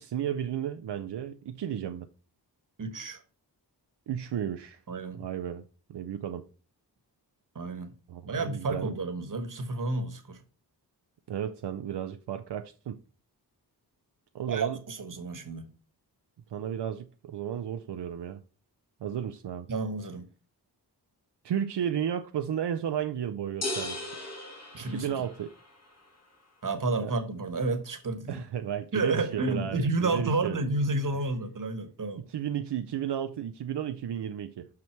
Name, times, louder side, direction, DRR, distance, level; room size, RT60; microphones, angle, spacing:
voice 1, 0.0-2.1 4.1-4.8 5.1-5.6 5.9-6.4 8.1-8.9 11.3-13.0 14.3-14.8 16.5-18.4 19.0-19.7 21.4-24.4 24.9-25.5 27.0-27.1 28.3-30.6 32.3-34.7, right 9 dB, 80° right, 0.6 m, -33 dB
voice 2, 2.8-3.2 4.9-5.2 7.5-7.9 8.2-10.4 14.5-15.7 19.7-20.2 24.7-25.2 26.6-28.4 28.9-32.2, right 3 dB, 50° right, 1.4 m, -31 dB
sound 1, 23.6-25.7, left 1 dB, 40° left, 1.9 m, -36 dB
6.1 x 5.9 x 4.5 m
wide cardioid pair, 130°, 41 cm